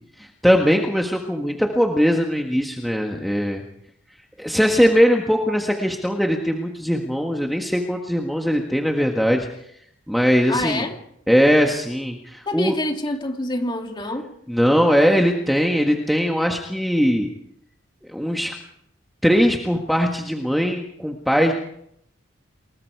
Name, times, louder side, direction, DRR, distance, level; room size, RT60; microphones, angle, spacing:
voice 1, 0.2-3.6 4.4-9.5 10.1-10.8 11.3-12.7 14.5-17.3 18.1-18.5 19.2-21.5, equal, ahead, 1.6 m, -20 dB
voice 2, 10.5-11.0 12.4-14.3, left 1 dB, 20° left, 2.8 m, -26 dB
29.0 x 21.0 x 4.8 m
head